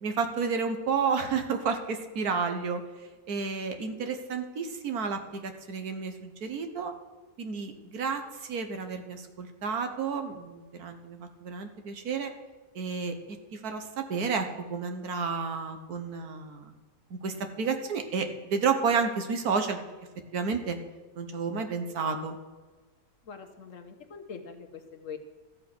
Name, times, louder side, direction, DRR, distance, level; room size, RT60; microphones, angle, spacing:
voice 1, 0.0-2.8 3.3-6.9 7.4-12.3 12.8-13.2 13.5-16.7 17.1-19.8 20.3-20.8 21.2-22.4, right 5 dB, 70° right, 6 dB, 1.6 m, -31 dB
voice 2, 23.2-25.2, left 6 dB, 55° left, 6 dB, 1.2 m, -43 dB
13.0 x 7.7 x 6.1 m, 1.3 s
omnidirectional pair, 1.7 m